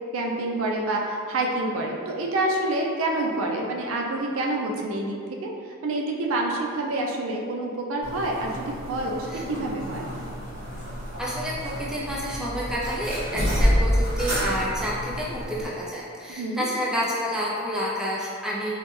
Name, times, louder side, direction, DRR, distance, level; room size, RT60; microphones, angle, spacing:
voice 1, 0.1-5.5 5.8-10.0 16.3-16.7, right 2 dB, 70° right, 0 dB, 0.4 m, -27 dB
sound 1, 8.0-15.7, equal, 90° right, 1.2 m, -28 dB
voice 2, 11.2-18.8, equal, 5° right, -6 dB, 0.3 m, -29 dB
3.1 x 2.1 x 3.0 m, 2.3 s
head